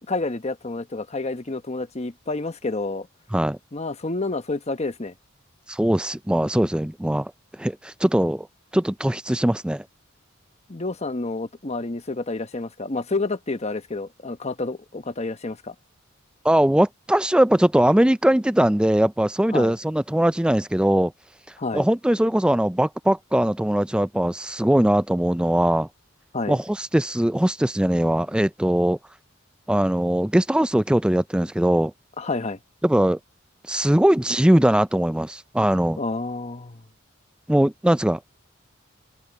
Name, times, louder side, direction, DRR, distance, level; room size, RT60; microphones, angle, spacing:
voice 1, 0.1-3.1 3.7-5.1 10.7-15.7 19.5-19.7 21.6-21.9 26.3-26.6 32.2-32.6 36.0-36.8, left 3 dB, 30° left, 1.0 m, -29 dB
voice 2, 5.7-7.3 7.6-8.5 8.7-9.8 16.4-21.1 21.7-25.9 26.5-29.0 29.7-31.9 32.8-33.2 33.7-36.0 37.5-38.2, right 1 dB, 5° right, 0.4 m, -20 dB
open air
head